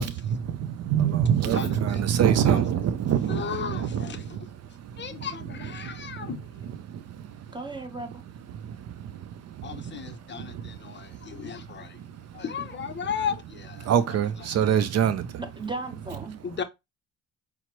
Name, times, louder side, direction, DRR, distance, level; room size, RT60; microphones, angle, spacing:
voice 1, 0.0-7.6 8.0-12.4 13.0-13.1 13.8-15.4, right 9 dB, 55° right, 0.4 m, -28 dB
voice 2, 1.5-2.0 2.5-2.6 3.3-4.2 5.0-6.6 9.6-12.0 12.3-13.9 16.4-16.6, left 7 dB, 40° left, 0.5 m, -35 dB
voice 3, 7.5-8.2 15.4-16.4, right 3 dB, 15° right, 0.9 m, -36 dB
5.7 x 2.0 x 2.9 m
cardioid pair, 90°, 30 cm